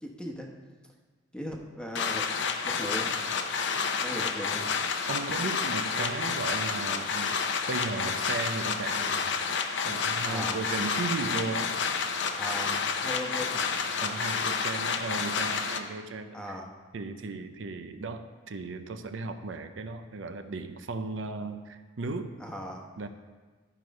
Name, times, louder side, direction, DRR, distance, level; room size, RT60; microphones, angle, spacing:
voice 1, 0.0-0.5 1.3-2.3 2.6-3.1 4.0-4.7 10.2-10.6 12.4-13.7 16.3-16.7 22.4-22.9, equal, 5° left, 1 dB, 1.0 m, -38 dB
sound 1, 1.9-15.8, left 5 dB, 65° left, 0.7 m, -30 dB
voice 2, 5.1-7.4 7.7-9.3 9.8-11.8 14.0-16.6 16.9-22.4 23.0-23.1, right 3 dB, 80° right, 8 dB, 0.6 m, -36 dB
12.5 x 4.7 x 5.2 m, 1.4 s
head